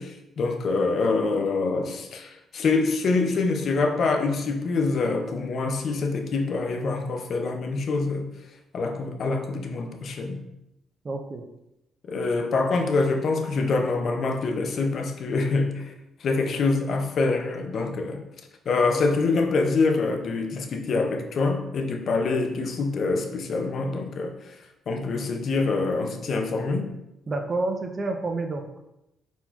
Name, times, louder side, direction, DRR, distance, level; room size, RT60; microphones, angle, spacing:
voice 1, 0.0-8.3 8.7-10.4 12.0-15.9 16.2-18.2 18.7-24.3 24.9-26.9, left 3 dB, 60° left, 0.5 m, -25 dB
voice 2, 11.0-11.5 27.3-28.7, right 2 dB, 35° right, 0.5 m, -29 dB
4.2 x 4.2 x 2.3 m
cardioid pair, 90°, 0 cm